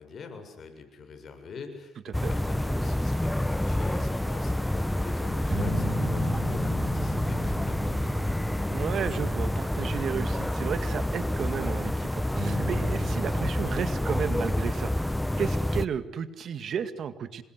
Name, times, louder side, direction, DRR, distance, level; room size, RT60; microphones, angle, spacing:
voice 1, 0.0-8.2, left 5 dB, 50° left, 6 dB, 7.2 m, -44 dB
sound 1, 2.1-15.9, left 1 dB, 5° left, 1.0 m, -28 dB
sound 2, 5.5-10.4 10.8-11.6 12.3-13.4, equal, 40° right, 6.1 m, -34 dB
voice 2, 8.7-14.9 15.4-17.4, right 7 dB, 60° right, 12 dB, 2.0 m, -33 dB
27.0 x 21.5 x 8.2 m, 0.83 s
cardioid pair, 90°, 0 cm